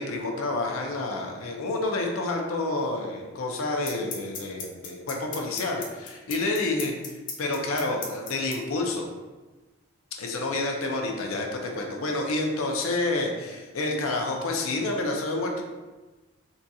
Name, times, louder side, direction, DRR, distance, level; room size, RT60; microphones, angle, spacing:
voice 1, 0.0-6.9 7.4-9.1 10.2-15.6, left 2 dB, 90° left, 1 dB, 0.5 m, -29 dB
sound 1, 2.7-2.8 3.9-8.5, left 6 dB, 40° left, 0.5 m, -35 dB
3.8 x 2.6 x 2.3 m, 1.2 s
head